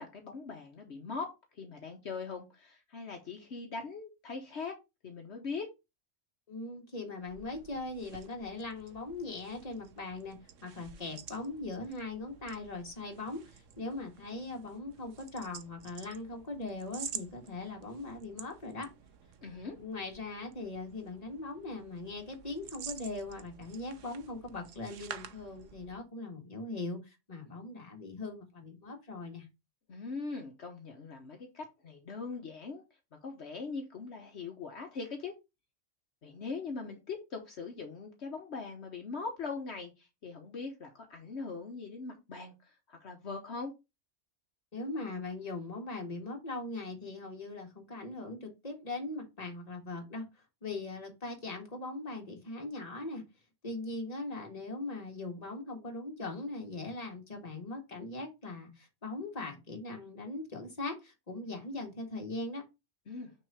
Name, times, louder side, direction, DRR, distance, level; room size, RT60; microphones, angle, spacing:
voice 1, 0.0-4.7 5.0-5.7 19.4-19.8 29.9-32.8 33.2-35.3 36.2-43.7 63.1-63.3, left 4 dB, 65° left, 1.3 m, -41 dB
voice 2, 6.5-18.9 19.8-29.5 44.7-50.3 50.6-53.2 53.6-62.6, left 2 dB, 30° left, 1.7 m, -40 dB
sound 1, 7.2-26.1, right 8 dB, 85° right, 1.1 m, -50 dB
6.1 x 3.7 x 4.8 m
omnidirectional pair, 1.2 m